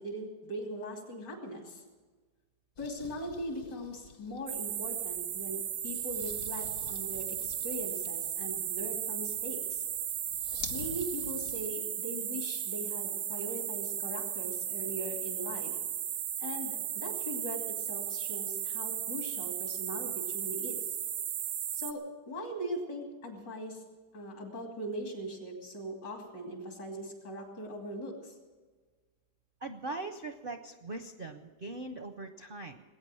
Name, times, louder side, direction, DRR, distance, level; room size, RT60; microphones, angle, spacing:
voice 1, 0.0-1.8 2.8-9.8 10.7-15.7 16.4-20.9 21.7-23.8 24.1-28.3, equal, 75° left, 2 dB, 3.3 m, -40 dB
sound 1, 2.8-11.7, left 5 dB, 55° left, 1.2 m, -49 dB
sound 2, 4.5-21.9, right 10 dB, 85° right, 1.5 m, -35 dB
voice 2, 29.6-32.8, right 2 dB, 55° right, 8 dB, 0.6 m, -41 dB
19.5 x 9.1 x 7.7 m, 1.4 s
omnidirectional pair, 1.9 m